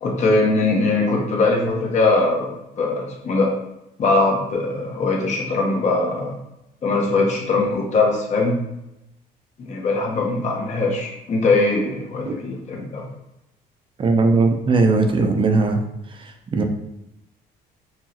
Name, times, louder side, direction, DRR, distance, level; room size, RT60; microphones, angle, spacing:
voice 1, 0.0-3.5 4.0-6.3 6.8-8.6 9.6-13.0, left 3 dB, 45° left, -1 dB, 1.0 m, -21 dB
voice 2, 14.0-15.8 16.2-16.6, right 3 dB, 30° right, 5 dB, 0.6 m, -19 dB
4.7 x 2.9 x 2.8 m, 0.88 s
cardioid pair, 110°, 17 cm